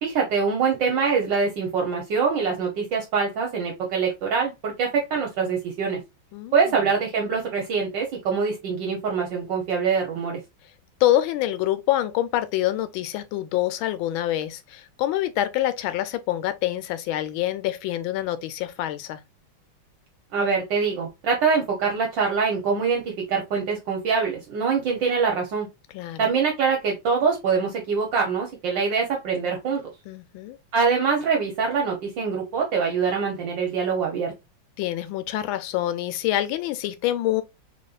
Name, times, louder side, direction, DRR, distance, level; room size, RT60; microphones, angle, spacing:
voice 1, 0.0-6.0 6.5-10.4 20.3-25.7 26.2-29.8 30.7-34.3, right 5 dB, 70° right, 1.6 m, -24 dB
voice 2, 6.3-6.7 11.0-19.2 25.9-26.3 30.1-30.6 34.8-37.4, left 13 dB, 85° left, 1.4 m, -26 dB
4.2 x 3.4 x 2.3 m
omnidirectional pair, 2.1 m